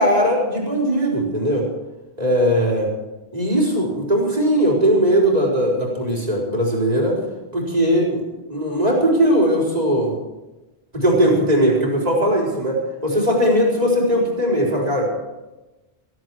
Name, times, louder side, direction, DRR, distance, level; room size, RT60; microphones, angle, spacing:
voice 1, 0.0-1.6 2.2-2.9 3.3-7.2 7.5-8.2 8.5-10.1 10.9-15.0, equal, 40° right, -3 dB, 4.5 m, -19 dB
15.5 x 15.5 x 4.8 m, 1.1 s
omnidirectional pair, 1.1 m